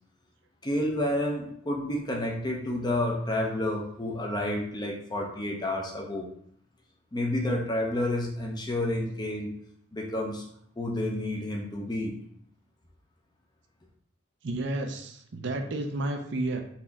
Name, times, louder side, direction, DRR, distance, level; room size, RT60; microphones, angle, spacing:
voice 1, 0.6-6.3 7.1-9.5 9.9-10.4 10.8-12.1, left 1 dB, 20° left, -1 dB, 0.6 m, -30 dB
voice 2, 14.4-16.6, right 2 dB, 55° right, 5 dB, 0.5 m, -31 dB
4.1 x 2.8 x 3.5 m, 0.68 s
head